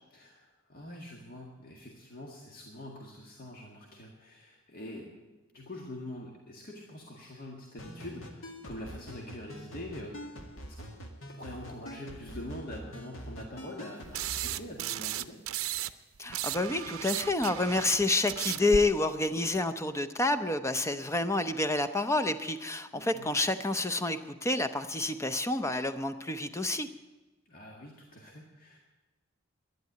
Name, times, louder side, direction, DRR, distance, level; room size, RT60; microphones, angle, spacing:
voice 1, 0.1-5.1 5.5-11.0 11.3-15.4 22.9-23.4 27.5-28.8, left 1 dB, 45° left, -1 dB, 1.8 m, -45 dB
sound 1, 7.8-14.6, equal, 70° left, 2.0 m, -45 dB
sound 2, 14.1-15.9 16.2-18.8, right 11 dB, 80° right, 0.6 m, -35 dB
voice 2, 16.2-26.9, left 2 dB, 15° left, 10 dB, 0.7 m, -29 dB
11.5 x 10.5 x 9.1 m, 1.2 s
head